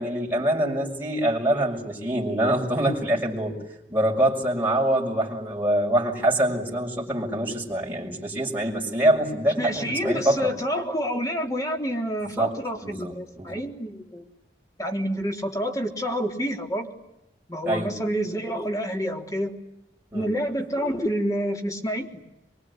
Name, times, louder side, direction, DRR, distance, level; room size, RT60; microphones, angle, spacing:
voice 1, 0.0-3.5 3.9-10.5 12.3-12.5 12.8-13.6 17.6-17.9 20.1-20.3, right 1 dB, 10° right, -4 dB, 6.6 m, -25 dB
voice 2, 9.6-14.2 14.8-16.9 17.5-19.5 20.1-22.2, equal, 20° left, 2 dB, 3.7 m, -28 dB
24.0 x 24.0 x 9.8 m, 0.89 s
head